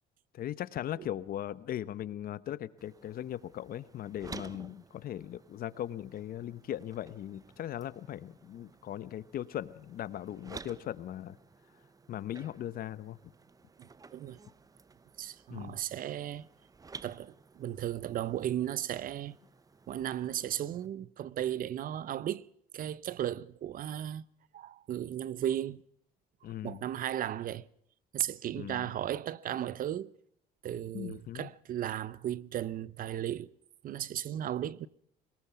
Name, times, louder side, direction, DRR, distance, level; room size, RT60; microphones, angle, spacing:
voice 1, 0.3-11.4 12.1-13.3 15.5-15.8 26.4-26.9 28.5-28.9 30.9-31.5, left 11 dB, 60° left, 1.1 m, -39 dB
sound 1, 2.8-20.9, right 4 dB, 20° right, 0.7 m, -53 dB
voice 2, 13.8-14.4 15.2-16.5 17.0-19.4 19.9-22.5 22.7-24.2 24.5-25.8 26.6-27.7 28.1-30.1 30.6-33.5 33.8-34.9, right 11 dB, 55° right, 0.7 m, -35 dB
22.5 x 20.0 x 5.8 m
cardioid pair, 110°, 17 cm